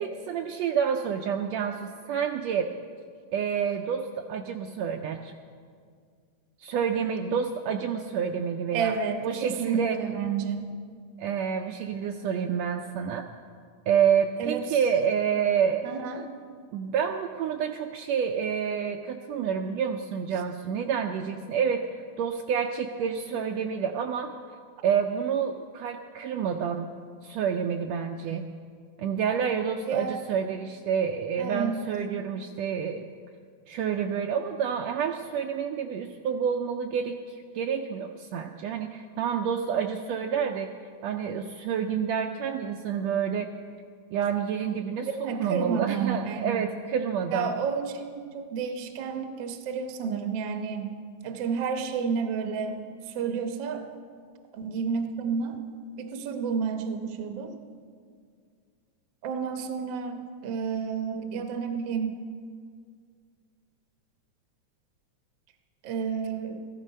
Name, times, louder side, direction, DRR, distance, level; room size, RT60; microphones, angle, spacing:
voice 1, 0.0-2.7 3.3-5.3 6.6-8.9 9.2-10.0 11.2-13.3 13.9-15.9 16.7-21.8 22.2-24.3 24.8-26.9 27.2-28.5 29.0-33.1 33.7-40.7 41.0-43.5 44.1-47.5, right 7 dB, 80° right, 4 dB, 1.6 m, -28 dB
voice 2, 8.7-10.6 14.4-14.6 15.8-16.3 29.9-30.2 31.4-31.9 45.2-46.6 47.3-50.9 51.2-52.7 53.1-53.8 54.5-55.6 56.0-57.5 59.2-62.1 65.8-66.6, right 6 dB, 60° right, 5 dB, 1.3 m, -30 dB
14.5 x 13.0 x 5.4 m, 2.1 s
omnidirectional pair, 3.4 m